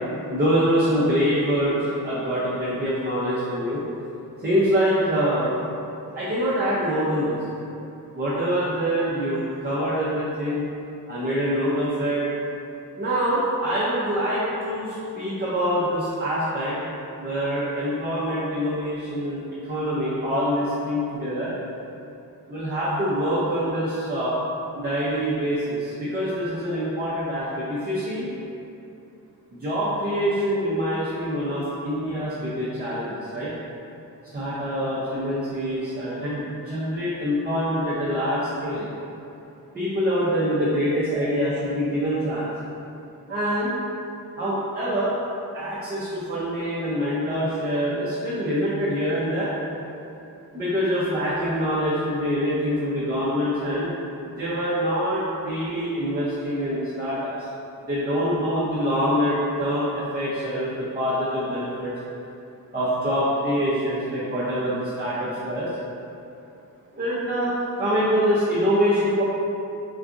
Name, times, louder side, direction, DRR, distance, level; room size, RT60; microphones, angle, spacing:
voice 1, 0.3-3.8 4.4-5.5 6.1-7.4 8.1-10.7 11.1-12.3 13.0-16.8 17.2-21.5 22.5-24.3 24.7-28.3 29.5-33.5 34.3-38.9 39.7-42.5 43.3-43.7 44.4-45.1 45.5-49.5 50.5-53.9 54.4-57.5 57.8-60.7 60.9-61.9 62.7-65.7 66.9-69.2, equal, 25° right, -9 dB, 0.5 m, -25 dB
3.8 x 2.3 x 2.4 m, 2.8 s
wide cardioid pair, 100°, 35 cm